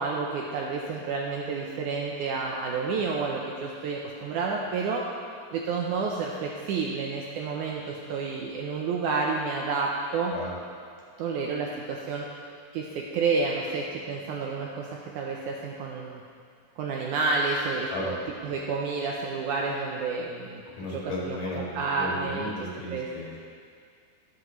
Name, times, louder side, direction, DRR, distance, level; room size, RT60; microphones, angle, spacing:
voice 1, 0.0-5.0 5.5-10.3 11.2-12.3 12.7-16.2 16.8-18.2 18.4-20.6 21.3-22.5 22.9-23.1, right 4 dB, 75° right, -1 dB, 2.0 m, -30 dB
voice 2, 20.8-23.4, left 2 dB, 75° left, -5 dB, 3.4 m, -35 dB
20.5 x 7.7 x 3.1 m, 2.2 s
omnidirectional pair, 4.0 m